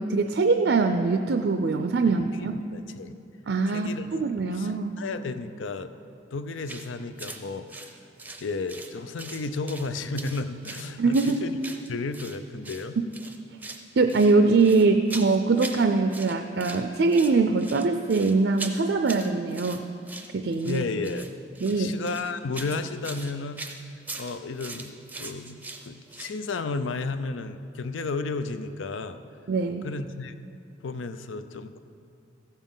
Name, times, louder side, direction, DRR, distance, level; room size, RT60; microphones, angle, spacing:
voice 1, 0.0-2.5 3.5-4.9 11.0-11.4 14.0-19.8 20.3-20.8 21.6-21.9 29.5-29.8, right 3 dB, 65° right, 7 dB, 0.4 m, -23 dB
voice 2, 2.3-3.1 3.7-4.2 4.5-5.9 6.3-7.9 8.4-11.6 11.9-13.0 20.6-21.3 21.7-23.6 24.1-25.6 25.9-29.2 29.8-30.3 30.8-31.8, left 3 dB, 90° left, 10 dB, 0.6 m, -33 dB
sound 1, 6.6-6.9 7.2-7.4 7.7-8.9 9.2-9.9 10.2-12.4 12.6-12.9 13.1-13.8 14.1-15.8 16.1-16.8 17.1-26.4, right 3 dB, 10° right, 0.6 m, -40 dB
14.5 x 7.2 x 5.6 m, 2.4 s
head